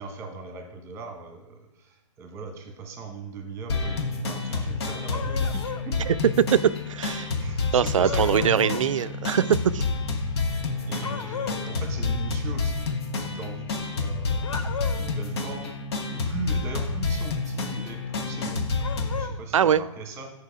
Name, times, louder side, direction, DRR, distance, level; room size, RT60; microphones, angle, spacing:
voice 1, 0.0-6.0 7.4-8.7 9.4-9.5 10.0-14.7 15.0-15.8 16.1-18.6 19.2-20.3, right 4 dB, 15° right, 4 dB, 1.4 m, -39 dB
sound 1, 3.7-19.3, left 3 dB, 50° left, 1.0 m, -29 dB
sound 2, 5.1-5.9 8.0-8.9 11.0-11.7 14.4-15.2 18.8-19.4, left 5 dB, 70° left, 0.7 m, -35 dB
voice 2, 6.1-7.3 7.7-9.4 9.7-9.8 19.5-19.8, right 8 dB, 75° right, 16 dB, 0.4 m, -22 dB
6.5 x 5.0 x 4.7 m, 0.88 s
hypercardioid pair, 140°, 17 cm